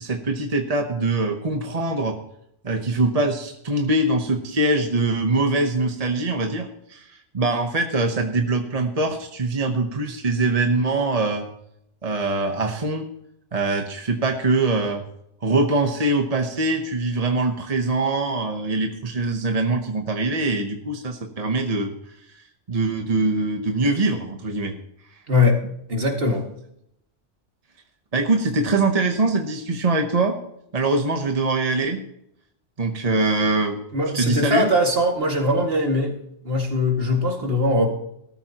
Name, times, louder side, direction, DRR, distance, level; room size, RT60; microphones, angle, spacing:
voice 1, 0.0-2.2 2.6-11.5 12.0-13.1 13.5-15.0 15.4-21.9 22.3-24.8 28.1-30.4 30.7-32.0 32.8-33.8 34.1-34.7, right 2 dB, 35° right, 4 dB, 1.0 m, -23 dB
voice 2, 25.3-25.6 25.9-26.5 33.9-36.2 36.4-37.9, left 1 dB, 50° right, 2 dB, 2.3 m, -21 dB
17.5 x 13.5 x 2.9 m, 0.76 s
omnidirectional pair, 1.3 m